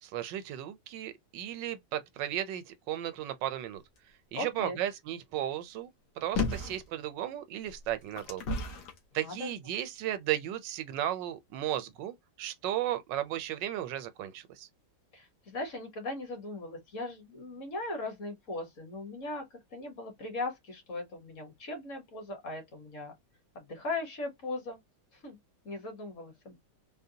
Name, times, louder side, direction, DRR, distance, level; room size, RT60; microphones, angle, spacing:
voice 1, 0.0-3.8 4.3-5.9 6.2-8.5 9.1-14.7, right 12 dB, 80° right, 1.3 m, -35 dB
voice 2, 4.3-4.8 9.1-9.5 15.1-19.4 19.7-23.1 23.5-24.8 25.1-25.4 25.6-26.6, left 2 dB, 50° left, 1.3 m, -38 dB
sound 1, 6.3-6.8 7.6-9.0 9.7-9.8, left 3 dB, 70° left, 1.4 m, -33 dB
3.9 x 2.1 x 2.7 m
omnidirectional pair, 1.9 m